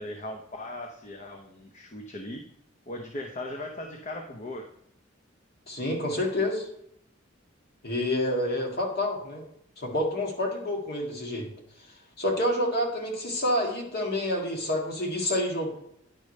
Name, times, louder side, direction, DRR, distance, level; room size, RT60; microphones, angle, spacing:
voice 1, 0.0-2.4 2.9-4.6, left 1 dB, 35° left, 3 dB, 0.7 m, -38 dB
voice 2, 5.7-6.7 7.8-9.4 9.8-11.5 12.2-15.7, left 1 dB, 55° left, 0 dB, 2.0 m, -28 dB
9.8 x 4.9 x 4.2 m, 0.74 s
head